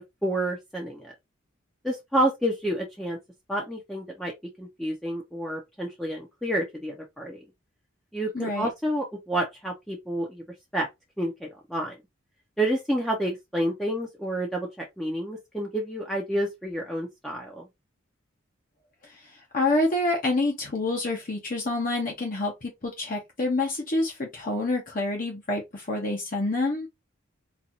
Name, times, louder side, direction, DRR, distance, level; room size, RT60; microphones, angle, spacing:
voice 1, 0.2-1.1 1.8-3.2 3.5-4.3 4.6-7.4 8.1-10.4 10.7-10.9 11.2-11.9 12.6-17.6, right 1 dB, ahead, 0.7 m, -29 dB
voice 2, 8.3-8.7 19.5-26.9, left 2 dB, 45° left, 1.0 m, -27 dB
4.0 x 2.5 x 2.8 m
head